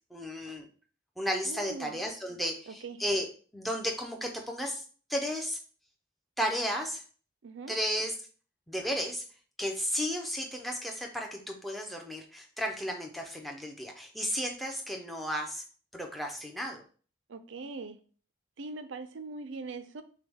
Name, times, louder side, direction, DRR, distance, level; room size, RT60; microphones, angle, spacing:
voice 1, 0.1-0.7 1.2-3.3 3.5-4.8 5.1-5.6 6.4-7.0 7.7-8.1 8.7-9.2 9.6-15.6 15.9-16.8, equal, ahead, 2 dB, 0.6 m, -33 dB
voice 2, 1.5-1.9 2.8-3.0 7.4-7.8 17.3-18.0 18.6-20.0, right 3 dB, 75° right, 10 dB, 0.5 m, -41 dB
6.4 x 2.3 x 3.5 m, 0.40 s
head